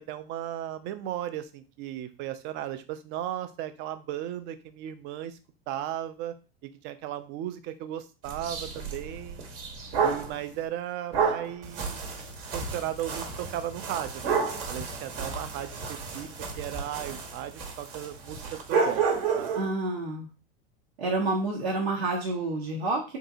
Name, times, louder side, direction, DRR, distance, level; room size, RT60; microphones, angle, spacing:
voice 1, 0.0-5.4 5.7-6.3 6.6-9.5 10.0-12.0 12.5-16.3 16.6-19.0 19.3-19.5, right 12 dB, 40° right, 11 dB, 0.5 m, -36 dB
sound 1, 8.3-10.4 11.1-19.7, right 5 dB, 65° right, 1.2 m, -31 dB
voice 2, 19.5-20.3 21.0-23.2, right 2 dB, 85° right, -2 dB, 1.1 m, -29 dB
3.7 x 2.8 x 2.6 m, 0.32 s
hypercardioid pair, 115°, 31 cm